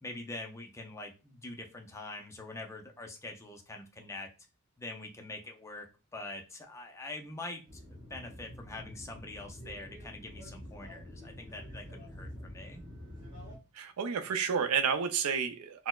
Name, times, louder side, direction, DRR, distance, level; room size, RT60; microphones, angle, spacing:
voice 1, 0.0-4.3 4.8-7.8 8.1-12.8, left 2 dB, 15° left, 2 dB, 0.4 m, -44 dB
sound 1, 7.6-13.6, equal, 20° right, 1.5 m, -47 dB
voice 2, 13.7-15.9, right 6 dB, 80° right, 8 dB, 0.4 m, -30 dB
4.1 x 2.0 x 2.3 m, 0.31 s
head